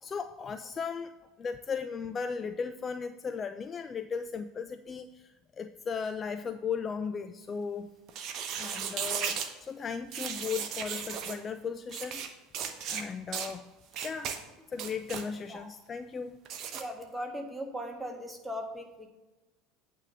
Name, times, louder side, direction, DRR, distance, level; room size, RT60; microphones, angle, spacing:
voice 1, 0.0-7.9 8.5-12.2 12.9-13.6 14.0-14.3 14.7-16.4, left 6 dB, 30° left, 10 dB, 0.4 m, -36 dB
sound 1, 8.1-9.5 10.1-11.4 11.9-12.3 12.5-13.0 13.3-13.5 13.9-14.4 14.7-15.3 16.5-16.8, right 7 dB, 50° right, 0.9 m, -35 dB
voice 2, 16.7-19.1, equal, 5° right, 2 dB, 1.6 m, -38 dB
9.0 x 3.7 x 6.7 m, 1.1 s
hypercardioid pair, 75°, 0 cm